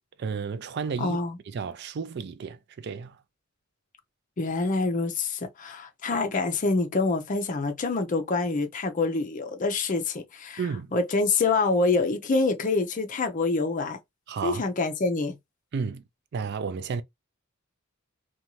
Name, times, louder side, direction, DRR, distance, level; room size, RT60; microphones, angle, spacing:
voice 1, 0.2-1.2 1.5-3.2 10.6-10.9 14.3-14.7 15.7-16.0 16.3-17.0, right 5 dB, 55° right, 0.4 m, -32 dB
voice 2, 1.0-1.4 4.4-10.6 10.9-14.0 14.4-15.4, left 3 dB, 40° left, 0.5 m, -26 dB
2.6 x 2.3 x 2.9 m
head